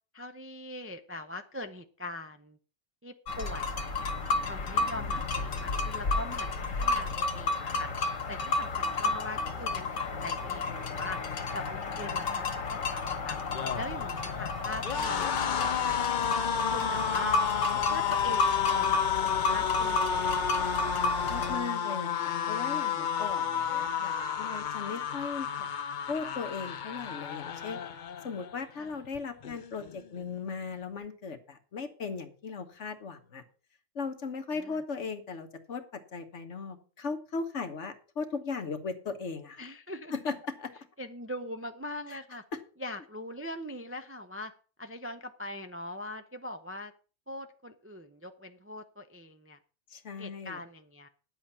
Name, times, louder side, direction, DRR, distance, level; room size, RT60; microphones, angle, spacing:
voice 1, 0.1-2.6 3.0-4.1 4.4-7.9 8.3-11.2 11.5-13.4 13.8-16.2 16.7-17.4 17.9-20.8 28.8-28.9 34.5-34.8 39.6-40.1 41.0-42.4 42.8-44.5 44.8-46.9 47.3-49.6 50.2-51.1, left 1 dB, 15° right, 7 dB, 0.4 m, -41 dB
sound 1, 3.3-21.6, left 3 dB, 90° left, 1.7 m, -32 dB
sound 2, 13.4-28.6 28.9-29.2 29.4-30.2, left 7 dB, 50° left, 0.7 m, -31 dB
voice 2, 21.3-25.7 26.1-27.8 28.2-33.4 33.9-39.6 40.1-40.7 42.1-42.2 42.5-42.6 49.9-50.6, left 4 dB, 65° left, 7 dB, 1.5 m, -37 dB
9.9 x 7.8 x 5.8 m, 0.38 s
omnidirectional pair, 1.3 m